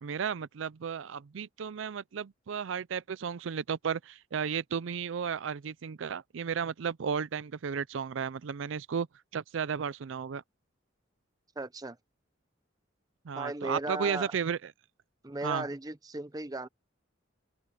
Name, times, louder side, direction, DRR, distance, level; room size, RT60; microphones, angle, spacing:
voice 1, 0.0-9.1 9.3-10.4 13.3-14.6 15.4-15.7, right 7 dB, 75° right, 0.4 m, -34 dB
voice 2, 11.6-12.0 13.3-14.4 15.2-16.7, right 2 dB, 20° right, 0.8 m, -36 dB
open air
head